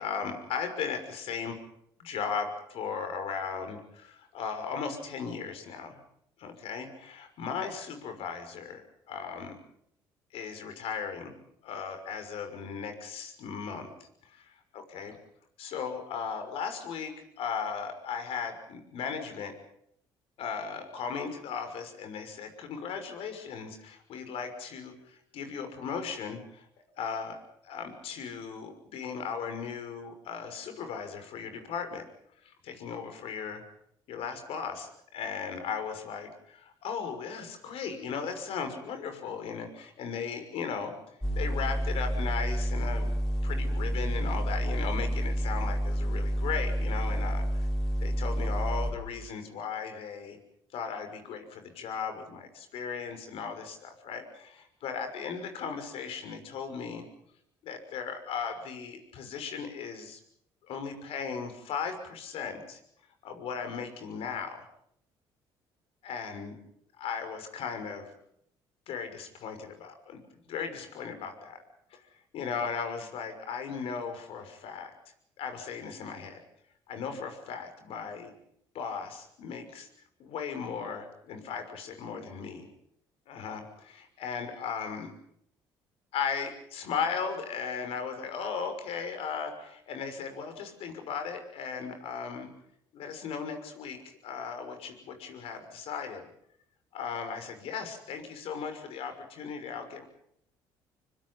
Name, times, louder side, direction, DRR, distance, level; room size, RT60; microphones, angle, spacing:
voice 1, 0.0-1.5 2.0-6.0 6.4-8.8 9.1-9.6 10.3-11.3 11.6-13.9 14.7-15.2 15.6-19.5 20.4-26.7 27.0-27.4 27.6-32.1 32.4-33.6 34.1-40.9 41.4-43.2 43.4-47.4 48.0-50.4 50.7-57.0 57.6-60.2 60.7-62.8 63.2-64.7 66.0-66.6 67.0-68.1 68.9-71.6 72.3-74.9 75.4-76.4 76.9-78.3 78.7-79.9 80.2-82.7 83.3-85.1 86.1-92.5 92.9-96.2 96.9-100.1, left 6 dB, 70° left, 7 dB, 6.0 m, -37 dB
sound 1, 41.2-48.9, equal, 5° left, 5.5 m, -29 dB
25.5 x 25.0 x 5.5 m, 0.72 s
supercardioid pair, 80°, 10 cm